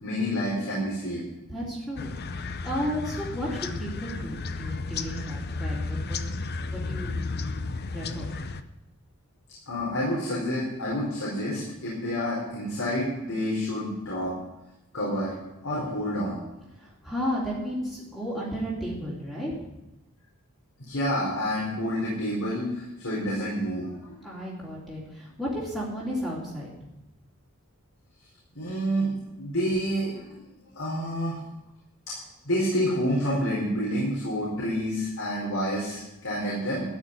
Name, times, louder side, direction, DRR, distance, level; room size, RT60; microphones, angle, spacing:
voice 1, 0.0-1.2 9.7-14.3 14.9-15.3 15.6-16.4 20.9-24.2 28.5-29.1 29.4-30.4 30.7-31.4 32.1-32.2 32.4-36.8, equal, 65° left, -6 dB, 4.5 m, -28 dB
voice 2, 1.5-6.2 6.7-7.2 7.9-8.3 16.8-19.5 24.2-26.7, equal, ahead, -8 dB, 3.8 m, -33 dB
sound 1, 2.0-8.6, left 3 dB, 45° left, 0.7 m, -33 dB
13.5 x 6.4 x 9.8 m, 0.95 s
head